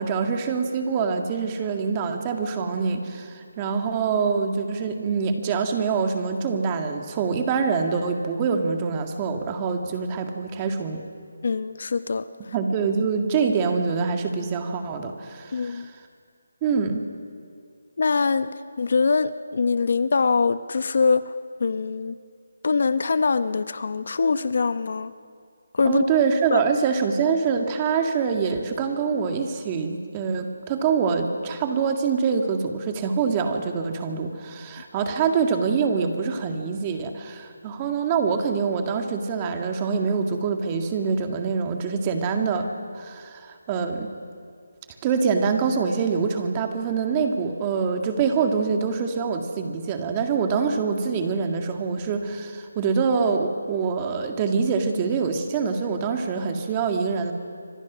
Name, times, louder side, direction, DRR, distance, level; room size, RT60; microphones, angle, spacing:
voice 1, 0.0-11.0 12.5-15.8 16.6-17.0 25.8-42.7 42.9-44.1 45.0-57.3, right 5 dB, 20° right, 4 dB, 1.9 m, -25 dB
voice 2, 11.4-12.5 15.5-15.9 18.0-18.5 18.8-22.2 22.6-25.1 25.7-26.0 26.5-26.6, left 4 dB, 55° left, 13 dB, 0.8 m, -23 dB
27.0 x 26.0 x 6.3 m, 2.2 s
figure-of-eight pair, 165°, 0 cm